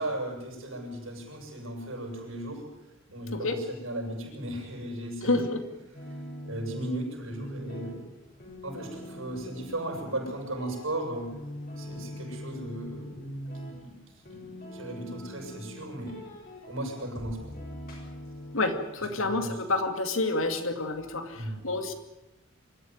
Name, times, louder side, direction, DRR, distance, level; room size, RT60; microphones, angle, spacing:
voice 1, 0.0-2.7 3.1-5.5 6.4-8.0 8.6-11.3 11.8-13.2 13.7-13.9 14.3-16.2 16.6-17.5 19.0-19.6 21.3-21.7, right 1 dB, 70° right, 1 dB, 7.7 m, -36 dB
voice 2, 5.2-5.6 18.5-21.9, left 2 dB, 70° left, 7 dB, 2.5 m, -28 dB
sound 1, 5.9-18.6, equal, 45° left, 6.4 m, -42 dB
25.0 x 14.0 x 9.6 m, 0.94 s
head